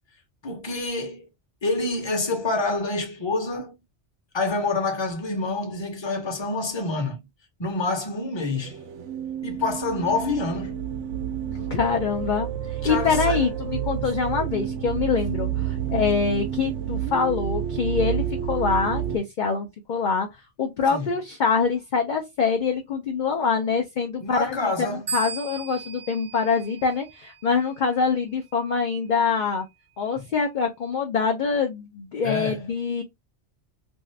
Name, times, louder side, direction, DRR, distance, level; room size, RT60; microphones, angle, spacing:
voice 1, 0.4-1.3 1.6-3.8 4.3-7.2 7.6-8.8 9.4-10.8 12.8-13.5 20.9-21.1 24.2-25.0 30.2-30.3 32.2-32.6, left 3 dB, 25° left, 0.7 m, -27 dB
sound 1, 8.6-19.2, right 10 dB, 80° right, 0.9 m, -29 dB
voice 2, 11.5-20.3 20.6-29.7 30.0-33.0, left 5 dB, 55° left, 0.6 m, -25 dB
sound 2, 25.1-27.5, right 5 dB, 60° right, 0.3 m, -36 dB
2.7 x 2.4 x 3.1 m
omnidirectional pair, 1.2 m